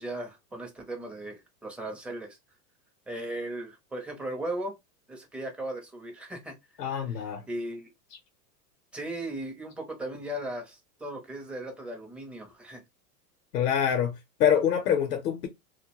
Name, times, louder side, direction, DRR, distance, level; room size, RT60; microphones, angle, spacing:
voice 1, 0.0-2.4 3.1-4.7 5.1-6.5 7.1-7.9 8.9-12.8, right 1 dB, 5° right, 0.4 m, -37 dB
voice 2, 6.8-7.4 13.5-15.5, left 8 dB, 90° left, 0.7 m, -25 dB
2.2 x 2.1 x 2.9 m
hypercardioid pair, 105°, 47 cm